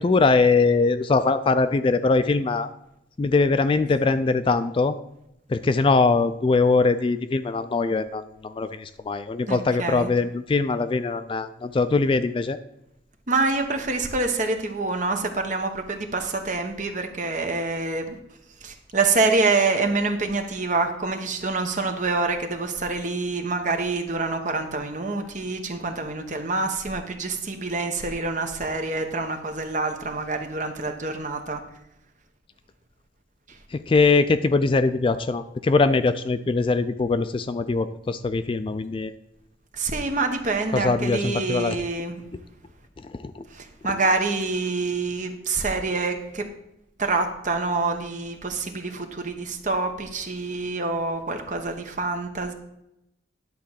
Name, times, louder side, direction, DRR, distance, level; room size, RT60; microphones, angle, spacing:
voice 1, 0.0-2.7 3.2-5.0 5.5-12.6 33.7-39.1 40.7-41.8 43.1-43.5, left 3 dB, 30° left, 12 dB, 0.3 m, -22 dB
voice 2, 9.5-10.1 13.3-18.2 18.6-31.6 33.5-33.6 39.7-42.2 43.5-46.5 47.0-52.5, right 3 dB, 45° right, 5 dB, 1.0 m, -26 dB
10.5 x 3.8 x 7.3 m, 0.84 s
head